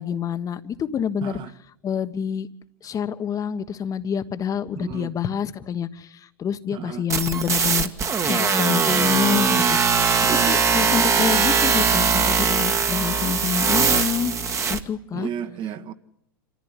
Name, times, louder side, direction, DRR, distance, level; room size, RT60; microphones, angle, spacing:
voice 1, 0.0-1.4 1.8-2.5 2.8-7.9 8.2-9.8 10.5-14.3 14.7-15.3, left 8 dB, 30° left, 1.4 m, -27 dB
voice 2, 1.2-1.5 4.7-5.1 6.7-7.0 10.2-10.6 15.1-15.9, right 9 dB, 40° right, 1.9 m, -32 dB
sound 1, 7.1-14.8, right 5 dB, 25° right, 1.7 m, -20 dB
27.0 x 14.5 x 9.9 m
hypercardioid pair, 100°, 12 cm